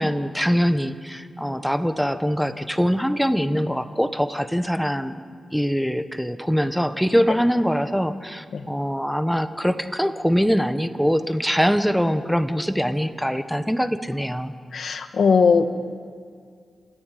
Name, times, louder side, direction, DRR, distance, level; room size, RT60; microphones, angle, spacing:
voice 1, 0.0-5.2 5.5-14.5, equal, ahead, 10 dB, 1.3 m, -23 dB
voice 2, 14.7-15.7, left 5 dB, 70° left, 8 dB, 1.7 m, -19 dB
28.5 x 14.0 x 9.4 m, 2.1 s
cardioid pair, 80°, 0 cm